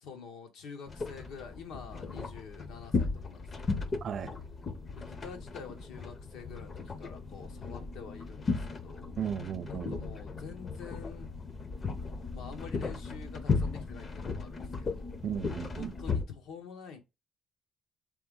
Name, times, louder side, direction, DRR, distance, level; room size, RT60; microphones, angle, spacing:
voice 1, 0.0-3.9 5.0-9.2 9.7-11.3 12.3-15.2 15.7-17.0, left 6 dB, 85° left, 1.1 m, -47 dB
sound 1, 0.9-16.2, left 4 dB, 30° left, 0.5 m, -36 dB
voice 2, 4.0-4.3 9.2-10.0 15.2-15.9, right 8 dB, 45° right, 0.3 m, -35 dB
3.5 x 3.4 x 3.6 m
cardioid pair, 135°, 0 cm